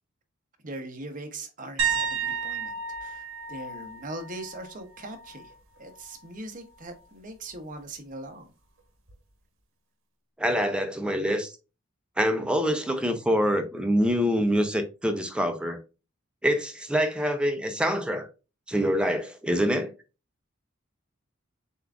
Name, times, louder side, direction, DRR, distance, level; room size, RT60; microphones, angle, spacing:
voice 1, 0.6-8.5, right 2 dB, 40° right, 0.8 m, -41 dB
sound 1, 1.8-5.5 5.9-6.2 9.1-9.2, right 6 dB, 80° right, 1.0 m, -32 dB
voice 2, 10.4-11.5 12.2-15.8 16.4-18.3 18.7-19.9, equal, 5° right, 0.5 m, -25 dB
6.8 x 2.4 x 2.3 m
head